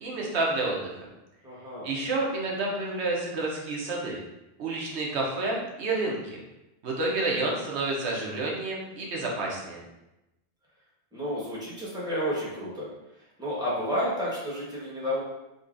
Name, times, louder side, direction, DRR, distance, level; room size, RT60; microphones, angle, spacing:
voice 1, 0.0-1.0 1.8-4.2 4.6-6.4 6.8-9.8, right 2 dB, 80° right, -2 dB, 1.0 m, -29 dB
voice 2, 1.4-1.9 11.1-12.9 13.4-15.2, equal, 5° right, -7 dB, 1.0 m, -31 dB
5.2 x 2.2 x 2.5 m, 0.94 s
omnidirectional pair, 1.1 m